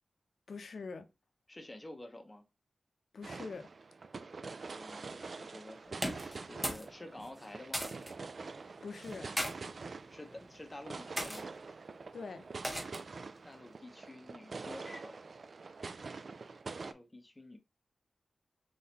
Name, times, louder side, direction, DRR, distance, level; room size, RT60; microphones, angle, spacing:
voice 1, 0.5-1.1 3.1-3.7 8.8-9.3 12.1-12.4, left 4 dB, 65° left, 0.6 m, -43 dB
voice 2, 1.5-2.4 4.7-7.8 10.1-11.5 13.4-15.3 16.8-17.6, left 1 dB, 15° left, 0.9 m, -50 dB
sound 1, 3.2-16.9, right 4 dB, 55° right, 0.3 m, -46 dB
sound 2, 5.9-6.9 7.2-8.1 9.0-9.5 10.3-10.6 11.2-11.4 12.6-13.1, equal, 10° right, 0.9 m, -37 dB
3.9 x 3.8 x 2.9 m
wide cardioid pair, 135°, 0 cm